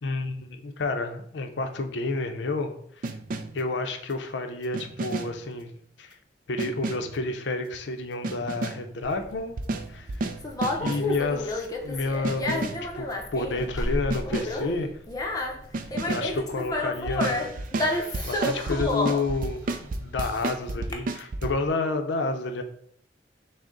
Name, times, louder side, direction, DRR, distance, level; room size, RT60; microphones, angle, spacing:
voice 1, 0.0-3.1 3.5-5.7 6.0-6.1 6.5-9.6 9.9-10.1 10.7-14.9 16.1-17.5 18.3-22.6, left 3 dB, 85° left, 6 dB, 0.6 m, -30 dB
sound 1, 3.0-3.7 4.7-5.5 6.6-7.2 8.2-9.0 9.6-11.2 12.2-12.9 14.1-14.7 15.7-16.4 17.1-21.5, right 2 dB, 50° right, 0.4 m, -32 dB
Conversation, 9.0-20.9, left 1 dB, 20° left, 0.6 m, -30 dB
6.2 x 2.1 x 3.8 m, 0.66 s
head